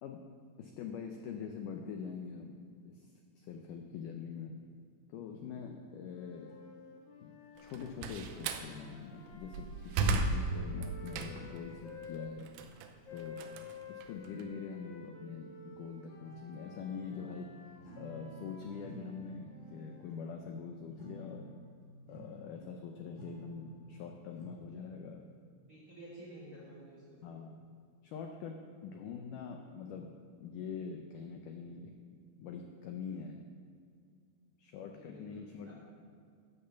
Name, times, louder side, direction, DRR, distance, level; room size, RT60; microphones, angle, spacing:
voice 1, 0.6-3.1 3.4-4.6 5.1-6.5 7.2-7.3 7.6-12.5 13.1-13.4 13.9-17.5 18.0-21.6 22.1-25.2 27.2-27.6 28.0-28.5 28.8-30.1 30.4-31.9 32.4-33.4 34.6-35.7, left 6 dB, 85° left, 3 dB, 1.8 m, -44 dB
sound 1, 6.1-12.3 13.0-20.1, left 4 dB, 65° left, 1.6 m, -52 dB
sound 2, 6.5-6.6 7.4-7.5 7.7-7.9 8.8-8.9 9.1-9.3 11.4-12.2 12.6-13.4 14.4-14.5 15.1-15.2 16.0-18.5 18.7-24.6, right 3 dB, 15° left, 1.2 m, -55 dB
Slam, 7.6-8.7 9.3-11.6 12.0-14.4, right 3 dB, 90° right, 2.7 m, -35 dB
voice 2, 25.6-27.3 34.8-35.7, right 1 dB, 25° right, -5 dB, 3.0 m, -52 dB
12.5 x 5.5 x 6.9 m, 2.3 s
omnidirectional pair, 4.6 m